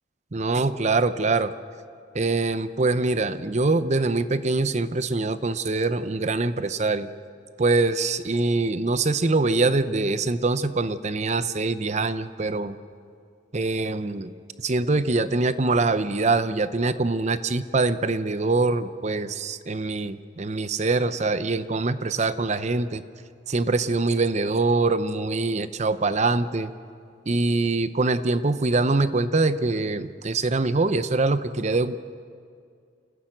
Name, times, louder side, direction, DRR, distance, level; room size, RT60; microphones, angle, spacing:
voice 1, 0.3-1.5 2.1-7.1 7.6-12.8 13.5-14.3 14.6-23.0 23.5-26.7 27.3-32.0, right 3 dB, 35° right, 13 dB, 0.7 m, -24 dB
28.0 x 14.5 x 7.9 m, 2.3 s
head